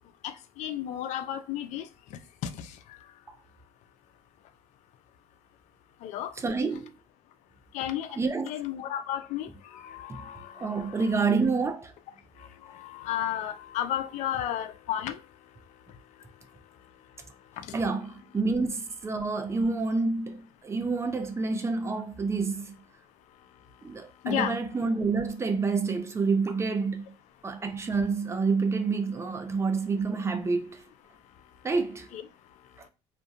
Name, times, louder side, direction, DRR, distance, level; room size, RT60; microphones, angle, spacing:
voice 1, 0.2-1.9 2.4-2.7 6.0-6.3 7.7-8.2 8.4-11.1 12.7-15.2 24.2-24.6 32.1-32.2, left 11 dB, 65° left, 0.4 m, -33 dB
voice 2, 6.4-6.9 8.2-8.5 10.2-10.3 10.6-11.9 17.7-22.7 23.8-27.0 27.4-30.9 31.6-32.2 32.8-32.9, right 4 dB, 20° right, 0.5 m, -28 dB
2.3 x 2.1 x 2.6 m
supercardioid pair, 90°, 13 cm